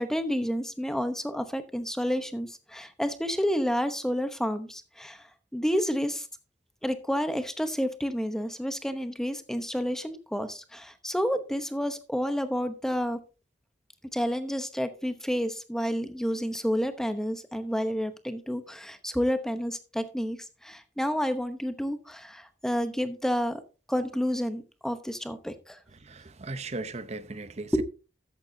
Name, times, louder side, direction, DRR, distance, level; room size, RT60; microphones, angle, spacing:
voice 1, 0.0-5.2 5.5-6.3 6.8-13.2 14.1-20.4 20.6-23.6 23.9-25.8 27.7-27.8, equal, 5° left, 0.9 m, -30 dB
voice 2, 25.9-27.8, right 3 dB, 40° right, 0.7 m, -37 dB
13.5 x 8.9 x 2.7 m
head